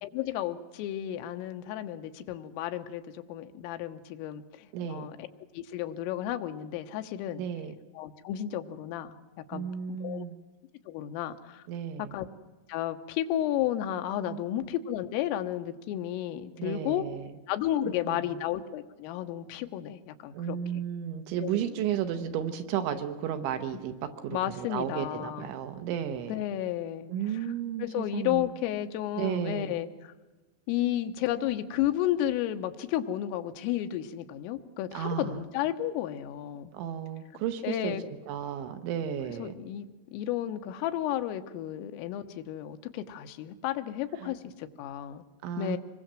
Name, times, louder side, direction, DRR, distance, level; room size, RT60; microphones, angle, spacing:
voice 1, 0.0-5.1 5.6-7.4 8.0-9.2 9.5-10.3 10.9-11.6 12.1-12.3 12.7-17.1 17.5-20.6 21.4-21.8 24.3-25.5 26.3-27.1 27.8-30.1 30.7-36.7 37.6-38.0 39.4-45.3 45.6-45.8, left 12 dB, 80° left, 8 dB, 3.6 m, -32 dB
voice 2, 4.7-5.1 7.4-7.7 9.5-10.4 11.7-12.1 14.3-14.4 16.6-17.3 17.8-18.4 20.3-26.4 27.1-28.5 29.2-29.8 34.9-35.4 36.7-38.0 38.3-39.5 44.2-44.3 45.4-45.8, right 9 dB, 70° right, 8 dB, 3.2 m, -33 dB
26.0 x 22.0 x 7.6 m, 1.2 s
omnidirectional pair, 6.0 m